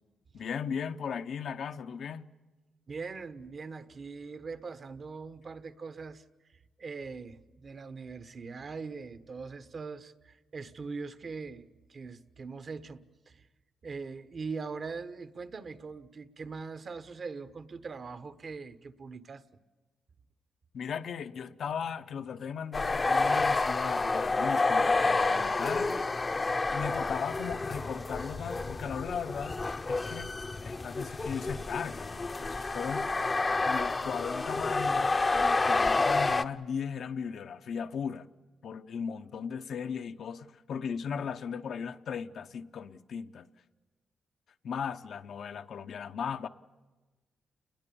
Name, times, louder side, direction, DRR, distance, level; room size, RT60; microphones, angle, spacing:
voice 1, 0.3-2.3 20.7-26.0 26.7-29.6 29.9-30.3 30.6-33.1 33.6-38.3 38.6-43.5 44.6-46.5, left 7 dB, 65° left, 0.9 m, -37 dB
voice 2, 2.9-6.2 6.5-13.5 13.8-19.4, right 4 dB, 40° right, 1.2 m, -41 dB
sound 1, 22.7-36.4, left 3 dB, 25° left, 0.8 m, -29 dB
30.0 x 21.0 x 7.1 m
cardioid pair, 120°, 0 cm